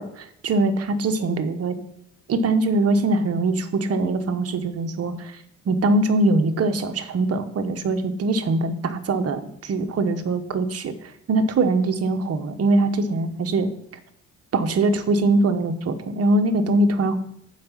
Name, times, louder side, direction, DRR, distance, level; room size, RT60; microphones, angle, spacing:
voice 1, 0.0-1.7 2.3-5.3 5.7-10.9 11.3-13.7 14.5-17.2, right 2 dB, 55° right, 8 dB, 1.1 m, -22 dB
7.5 x 5.0 x 7.3 m, 0.76 s
cardioid pair, 90°, 30 cm